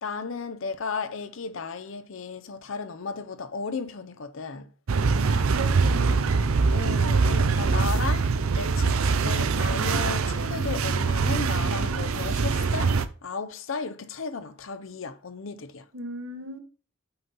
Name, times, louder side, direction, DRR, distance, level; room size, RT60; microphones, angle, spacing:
voice 1, 0.0-4.7 6.7-15.9, left 4 dB, 65° left, 0.6 m, -35 dB
sound 1, 4.9-13.1, right 4 dB, 85° right, 0.6 m, -23 dB
voice 2, 5.6-6.5 15.9-16.6, right 1 dB, 60° right, 1.1 m, -37 dB
5.8 x 5.4 x 3.9 m
head